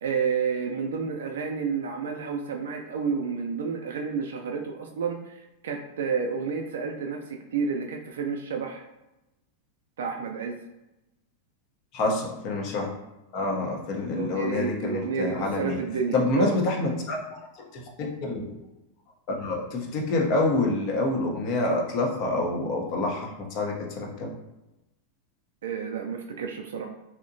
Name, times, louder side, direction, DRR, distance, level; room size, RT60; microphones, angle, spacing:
voice 1, 0.0-8.8 10.0-10.6 14.1-16.6 25.6-26.9, right 6 dB, 85° right, 2 dB, 0.3 m, -30 dB
voice 2, 11.9-12.9 13.3-15.8 16.1-17.2 17.6-18.5 19.3-24.3, left 2 dB, 50° left, 1 dB, 0.6 m, -27 dB
2.7 x 2.1 x 2.6 m, 0.97 s
hypercardioid pair, 115°, 0 cm